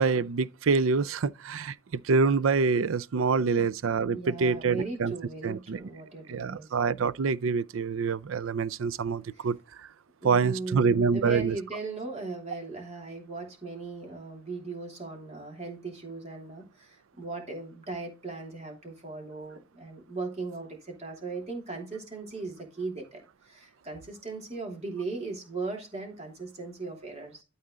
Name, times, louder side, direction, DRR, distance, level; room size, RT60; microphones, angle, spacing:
voice 1, 0.0-5.1 5.4-5.8 6.3-9.6 10.2-11.6, right 4 dB, 80° right, 0.5 m, -26 dB
voice 2, 3.4-6.7 9.3-9.4 10.2-27.4, right 3 dB, 35° right, 3.0 m, -38 dB
12.5 x 4.3 x 3.8 m
head